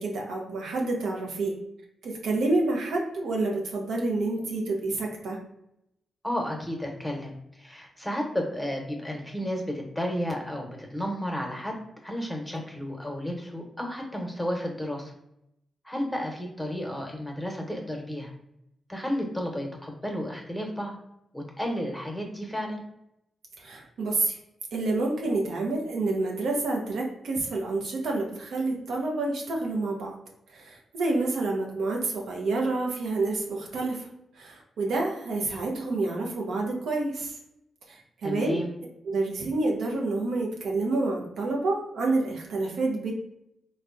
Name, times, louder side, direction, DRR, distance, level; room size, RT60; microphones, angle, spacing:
voice 1, 0.0-1.6 2.0-5.4 23.6-24.4 24.7-30.1 30.5-34.1 34.4-37.4 37.9-38.6 39.0-43.1, right 2 dB, 80° right, 0 dB, 0.6 m, -28 dB
voice 2, 6.2-11.8 12.0-15.1 15.8-18.3 18.9-21.0 21.3-22.8 38.2-38.7, equal, 5° left, 1 dB, 0.9 m, -32 dB
3.3 x 2.1 x 2.5 m, 0.80 s
supercardioid pair, 50°, 0 cm